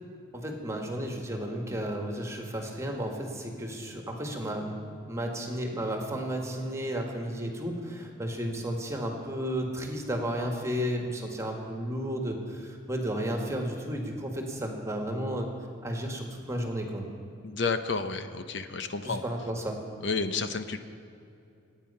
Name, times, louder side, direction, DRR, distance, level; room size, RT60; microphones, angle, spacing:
voice 1, 0.3-4.8 5.1-15.5 15.8-17.1 19.0-19.8, equal, 15° right, 2 dB, 1.8 m, -33 dB
voice 2, 17.4-19.2 20.0-20.8, left 4 dB, 65° left, 9 dB, 0.8 m, -31 dB
26.5 x 9.3 x 5.6 m, 2.6 s
head